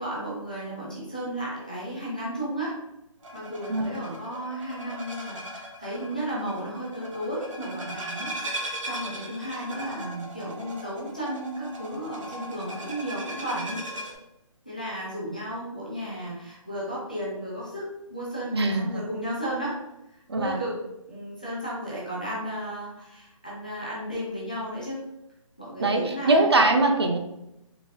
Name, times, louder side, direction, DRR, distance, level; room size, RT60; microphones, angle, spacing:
voice 1, 0.0-2.8 3.3-13.8 14.6-19.8 20.1-20.8 21.1-25.0 25.6-26.5, equal, 15° left, -7 dB, 0.4 m, -34 dB
sound 1, 3.2-14.1, right 1 dB, 65° right, 0.9 m, -38 dB
voice 2, 18.5-19.0 20.3-20.6 25.8-27.2, right 2 dB, 50° right, 4 dB, 0.4 m, -22 dB
3.9 x 2.7 x 2.6 m, 0.88 s
hypercardioid pair, 180°, 17 cm